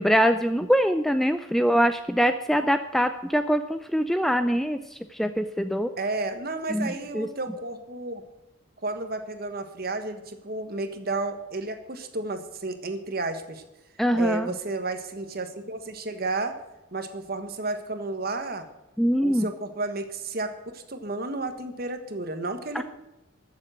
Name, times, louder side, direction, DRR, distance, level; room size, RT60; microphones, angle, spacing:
voice 1, 0.0-5.9 6.7-7.3 14.0-14.5 19.0-19.5 22.7-22.8, equal, ahead, 9 dB, 0.4 m, -23 dB
voice 2, 6.0-8.2 8.8-13.6 14.2-16.5 16.9-18.6 19.2-22.8, right 2 dB, 45° right, 7 dB, 1.4 m, -32 dB
14.0 x 7.6 x 6.3 m, 0.97 s
head